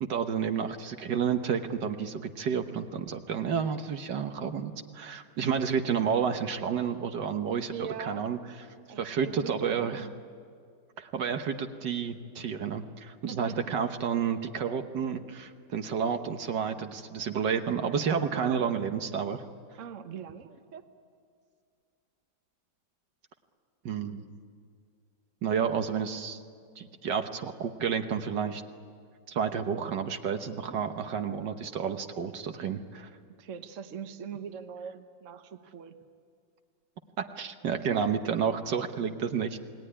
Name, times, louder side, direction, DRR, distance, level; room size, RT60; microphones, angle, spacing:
voice 1, 0.0-8.4 9.0-10.1 11.0-19.4 23.9-24.2 25.4-26.4 26.8-28.6 29.3-33.1 37.2-39.6, right 7 dB, 70° right, 7 dB, 1.7 m, -30 dB
voice 2, 7.7-8.3 8.9-10.2 13.3-13.6 18.3-18.7 19.8-20.8 30.6-30.9 33.4-36.0 37.9-38.1, right 7 dB, 50° right, 8 dB, 1.3 m, -42 dB
28.0 x 19.5 x 9.9 m, 2.2 s
omnidirectional pair, 2.0 m